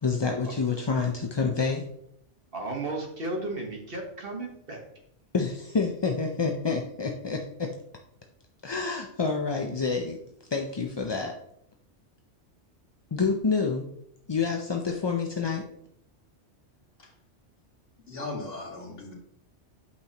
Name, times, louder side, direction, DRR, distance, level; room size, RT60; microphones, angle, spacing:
voice 1, 0.0-1.9 5.3-7.7 8.6-10.2 10.5-11.3 13.1-13.8 14.3-15.6, left 4 dB, 35° left, 2 dB, 0.4 m, -28 dB
voice 2, 2.5-4.8, right 2 dB, 50° right, 1 dB, 1.5 m, -34 dB
voice 3, 18.0-19.1, left 2 dB, 50° left, -3 dB, 2.2 m, -38 dB
8.5 x 6.0 x 2.9 m, 0.74 s
omnidirectional pair, 1.2 m